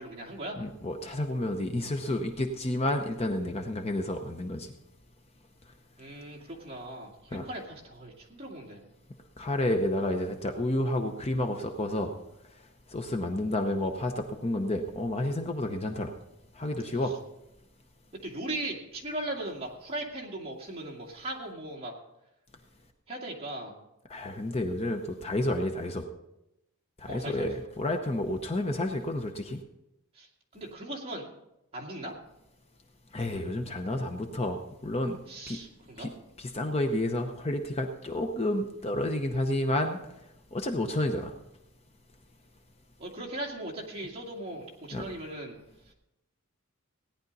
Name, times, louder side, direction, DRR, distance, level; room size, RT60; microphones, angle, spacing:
voice 1, 0.0-0.6 6.0-8.8 18.2-21.9 23.1-23.8 27.1-27.6 30.1-30.3 30.5-31.3 31.7-32.1 35.3-36.1 43.0-45.6, right 1 dB, 25° right, -2 dB, 2.3 m, -38 dB
voice 2, 0.6-4.7 7.3-7.4 9.4-12.1 12.9-16.1 16.6-17.1 24.1-26.0 27.0-29.6 33.1-35.2 35.5-35.6 36.0-36.1 36.4-40.0 40.5-41.3 44.9-45.1, left 1 dB, 25° left, 5 dB, 0.7 m, -30 dB
17.0 x 10.5 x 4.0 m, 0.88 s
head